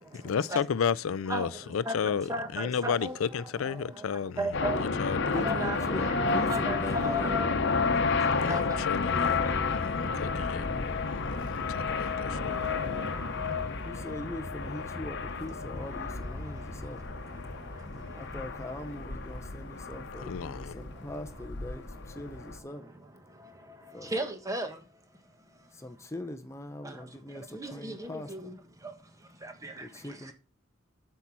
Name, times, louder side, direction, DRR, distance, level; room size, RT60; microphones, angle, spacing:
voice 1, 0.2-2.3 2.5-4.5 4.8-5.3 8.3-10.7 10.9-12.6 20.3-20.7, left 6 dB, 75° left, 0.4 m, -32 dB
voice 2, 1.8-3.2 3.6-3.8 4.4-4.8 5.4-6.0 6.5-7.5 8.5-8.8 24.0-24.8 26.8-26.9 27.5-28.5 28.8-28.9 29.4-29.8, equal, 15° right, 1.4 m, -34 dB
sound 1, 4.5-22.6, left 4 dB, 60° left, 1.0 m, -31 dB
voice 3, 5.3-7.4 13.8-17.0 18.1-22.9 23.9-24.1 25.7-28.5 29.8-30.3, left 1 dB, 15° left, 0.7 m, -41 dB
8.5 x 5.6 x 6.0 m
head